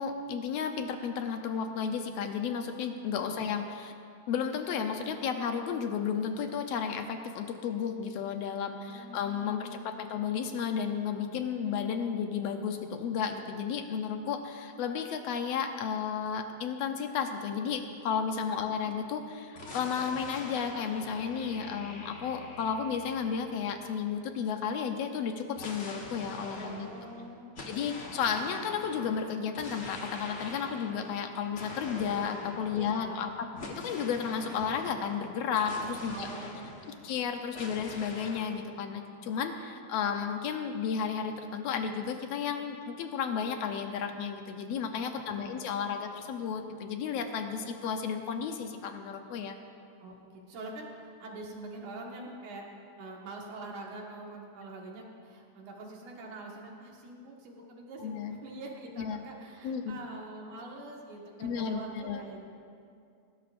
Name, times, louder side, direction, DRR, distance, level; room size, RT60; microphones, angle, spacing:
voice 1, 0.0-3.9 4.3-26.9 27.7-36.3 37.0-49.6 58.0-58.3 59.0-59.2 59.6-60.0 61.4-62.2, left 7 dB, 70° left, 6 dB, 1.7 m, -33 dB
voice 2, 8.8-10.0 11.6-11.7 18.6-18.9 26.5-27.7 32.7-33.3 36.1-37.0 45.2-45.6 50.0-52.7 53.0-62.4, right 2 dB, 85° right, -1 dB, 3.2 m, -45 dB
sound 1, 19.5-24.3 25.5-37.2 37.5-38.6, left 2 dB, 45° left, 0.8 m, -45 dB
19.0 x 16.5 x 2.6 m, 2.4 s
omnidirectional pair, 3.4 m